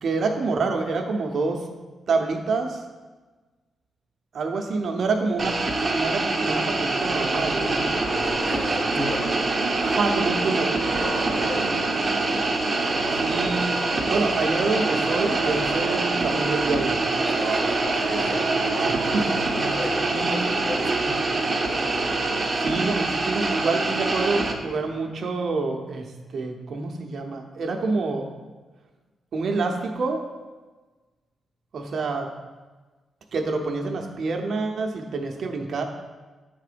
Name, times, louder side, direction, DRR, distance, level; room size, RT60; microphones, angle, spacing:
voice 1, 0.0-1.6 2.1-2.8 4.3-5.6 5.9-7.9 9.8-10.7 13.2-13.8 14.1-17.0 18.7-19.3 19.6-19.7 20.1-20.5 22.6-28.2 29.3-30.2 31.7-32.3 33.3-35.8, right 3 dB, 55° right, 3 dB, 0.7 m, -27 dB
sound 1, 5.4-24.5, right 2 dB, 25° right, 0.8 m, -25 dB
sound 2, 7.0-22.4, right 3 dB, 85° right, 0.8 m, -32 dB
voice 2, 8.1-9.3 11.3-11.8 17.2-18.6 19.6-21.2, left 1 dB, 15° left, 4 dB, 0.7 m, -35 dB
7.8 x 3.8 x 5.1 m, 1.3 s
cardioid pair, 130°, 0 cm